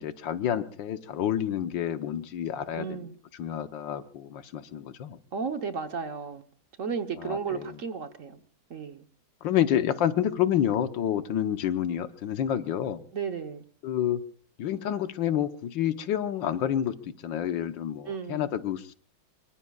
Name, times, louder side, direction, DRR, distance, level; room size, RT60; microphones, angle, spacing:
voice 1, 0.0-3.1 3.3-5.2 7.2-7.7 9.4-13.0 13.8-14.2 14.6-18.9, left 10 dB, 90° left, 10 dB, 1.7 m, -29 dB
voice 2, 2.7-3.2 5.3-6.4 6.8-8.4 8.7-9.0 13.1-13.6 18.1-18.5, right 6 dB, 50° right, 7 dB, 1.3 m, -34 dB
25.0 x 24.5 x 2.4 m, 0.41 s
omnidirectional pair, 2.0 m